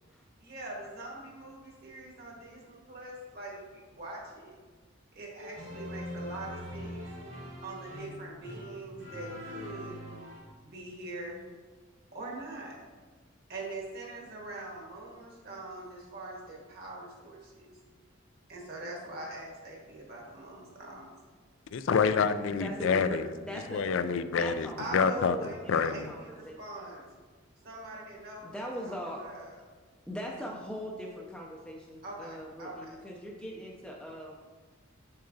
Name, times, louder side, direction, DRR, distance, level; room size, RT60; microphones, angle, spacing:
voice 1, 0.4-4.5 5.1-7.0 7.6-10.0 10.6-11.5 12.1-12.8 13.5-17.8 18.5-21.1 24.8-27.1 27.6-29.6 32.0-33.0, right 2 dB, 50° right, -2 dB, 1.5 m, -43 dB
sound 1, 5.4-10.4, left 1 dB, 65° right, 1.9 m, -42 dB
voice 2, 21.7-23.3 23.5-25.4 25.7-26.1, left 6 dB, 65° left, 12 dB, 0.4 m, -27 dB
voice 3, 22.6-23.2 23.5-23.8 24.4-24.8 25.1-26.6 28.4-29.2 30.1-34.4, equal, 5° left, -2 dB, 0.5 m, -40 dB
6.8 x 6.5 x 2.7 m, 1.4 s
head